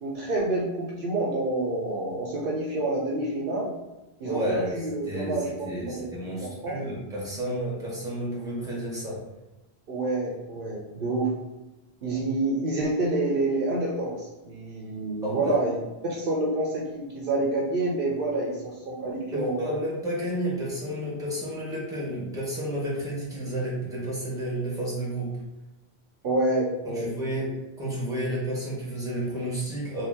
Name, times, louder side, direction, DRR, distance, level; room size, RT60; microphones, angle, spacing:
voice 1, 0.0-3.7 4.2-6.8 9.9-11.3 12.0-15.8 16.1-19.6 26.2-27.1, right 2 dB, 60° right, -3 dB, 0.8 m, -28 dB
voice 2, 4.2-4.7 5.1-5.4 5.6-9.2 15.2-15.6 19.3-25.3 26.8-27.5 27.8-30.1, right 1 dB, 5° right, -6 dB, 1.0 m, -31 dB
2.7 x 2.6 x 3.5 m, 1.0 s
omnidirectional pair, 1.1 m